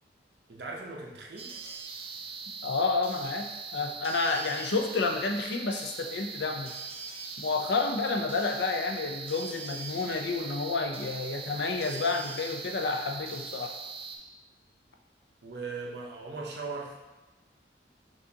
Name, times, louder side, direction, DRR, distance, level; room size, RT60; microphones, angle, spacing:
voice 1, 0.5-1.5 15.4-17.0, right 3 dB, 65° right, 0 dB, 0.7 m, -39 dB
sound 1, 1.4-14.2, right 4 dB, 35° right, 0.4 m, -41 dB
voice 2, 2.6-6.7 7.4-13.8, left 3 dB, 70° left, 3 dB, 0.5 m, -30 dB
6.0 x 2.5 x 2.8 m, 1.1 s
head